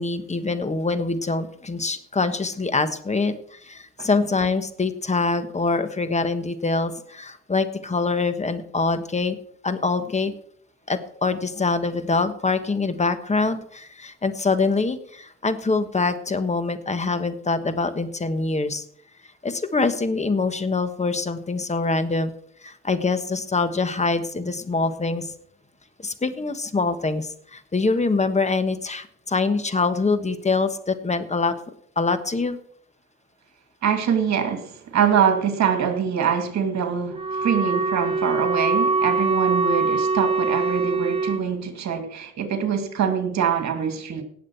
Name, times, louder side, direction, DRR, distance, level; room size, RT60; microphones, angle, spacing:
voice 1, 0.0-9.4 9.6-10.3 10.9-18.8 19.4-22.3 22.6-25.3 26.0-31.5 32.0-32.6, left 3 dB, 25° left, 11 dB, 1.3 m, -24 dB
voice 2, 33.8-44.2, right 7 dB, 65° right, 7 dB, 2.3 m, -24 dB
Wind instrument woodwind instrument, 37.1-41.5, right 3 dB, 20° right, 0.7 m, -23 dB
18.0 x 7.4 x 4.6 m, 0.65 s
cardioid pair, 90°, 30 cm